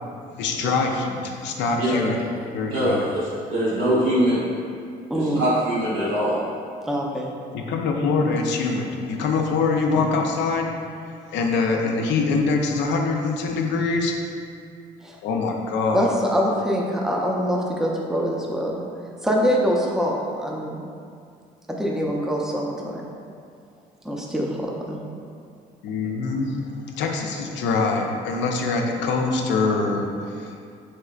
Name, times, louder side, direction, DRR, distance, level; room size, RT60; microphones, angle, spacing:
voice 1, 0.3-2.2 2.5-3.0 7.5-10.7 11.3-14.1 15.2-16.1 25.8-26.6 26.9-30.5, left 4 dB, 75° left, 2 dB, 0.4 m, -24 dB
voice 2, 1.8-2.1 2.7-4.4 5.1-6.4, right 1 dB, 80° right, -8 dB, 1.2 m, -23 dB
voice 3, 5.1-5.4 6.8-7.3 15.0-15.2 15.9-18.8 19.2-20.8 21.7-23.0 24.0-25.0, equal, ahead, -2 dB, 0.5 m, -24 dB
3.2 x 2.9 x 2.3 m, 2.3 s
supercardioid pair, 65°, 19 cm